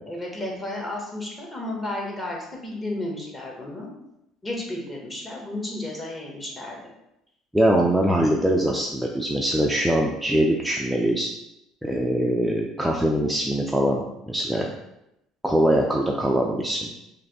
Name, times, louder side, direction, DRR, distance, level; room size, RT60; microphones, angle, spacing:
voice 1, 0.1-3.9 4.4-6.8, left 1 dB, 20° left, -2 dB, 1.1 m, -32 dB
voice 2, 7.5-11.3 11.8-14.7 15.4-16.9, right 1 dB, 5° right, -1 dB, 0.4 m, -22 dB
3.2 x 2.6 x 4.1 m, 0.85 s
supercardioid pair, 105°, 0 cm